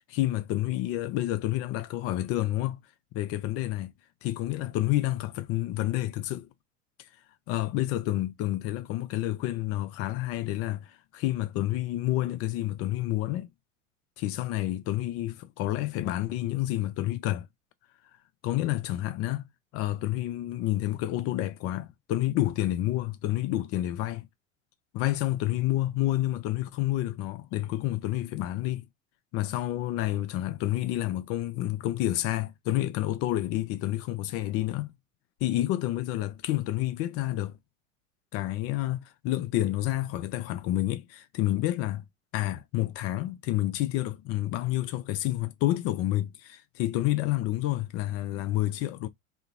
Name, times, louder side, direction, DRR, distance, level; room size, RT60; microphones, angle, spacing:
voice 1, 0.1-2.8 3.1-3.9 4.2-6.5 7.5-13.5 14.2-17.5 18.4-19.5 19.7-24.3 24.9-28.9 29.3-34.9 35.4-37.6 38.3-42.1 42.3-49.1, left 15 dB, 35° left, 0.4 m, -29 dB
2.7 x 2.0 x 2.4 m
hypercardioid pair, 85°, 40 cm